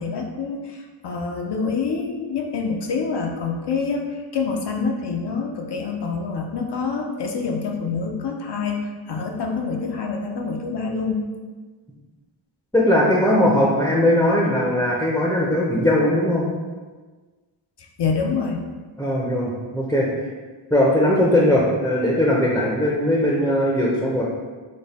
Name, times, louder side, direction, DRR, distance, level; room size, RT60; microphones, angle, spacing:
voice 1, 0.0-11.3 18.0-18.7, left 4 dB, 55° left, 2 dB, 0.5 m, -26 dB
voice 2, 12.7-16.5 19.0-20.1 20.7-24.2, left 1 dB, 5° left, -4 dB, 0.6 m, -19 dB
5.2 x 2.2 x 4.1 m, 1.3 s
wide cardioid pair, 135°, 49 cm